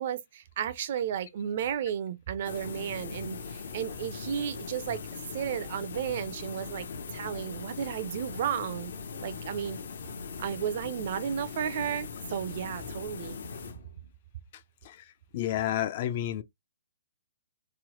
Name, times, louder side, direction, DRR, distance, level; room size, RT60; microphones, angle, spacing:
voice 1, 0.0-5.0 5.3-6.9 7.1-8.9 9.2-9.8 10.4-13.4, right 9 dB, 45° right, 0.4 m, -33 dB
sound 1, 2.4-14.1, left 5 dB, 70° left, 0.7 m, -40 dB
voice 2, 15.3-16.4, left 12 dB, 40° left, 0.3 m, -30 dB
3.1 x 2.1 x 2.9 m
hypercardioid pair, 165°, 0 cm